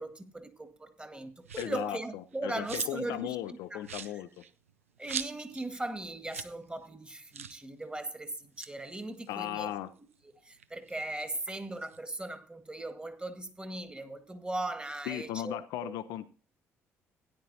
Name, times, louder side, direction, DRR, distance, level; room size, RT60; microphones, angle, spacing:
voice 1, 0.0-3.8 4.1-4.2 5.0-9.7 10.2-15.9, right 2 dB, 15° right, 1.8 m, -38 dB
sound 1, 1.4-1.9 2.3-3.1 3.4-3.5 3.8-5.7 6.0-6.1 6.3-6.6 6.8-6.9 7.3-7.6 8.4-10.1 10.5-12.0, right 7 dB, 85° right, 0.4 m, -42 dB
voice 2, 1.6-2.0 2.4-4.4 9.3-9.9 15.1-16.3, left 13 dB, 65° left, 0.6 m, -36 dB
16.5 x 10.5 x 2.8 m
figure-of-eight pair, 45°, 7 cm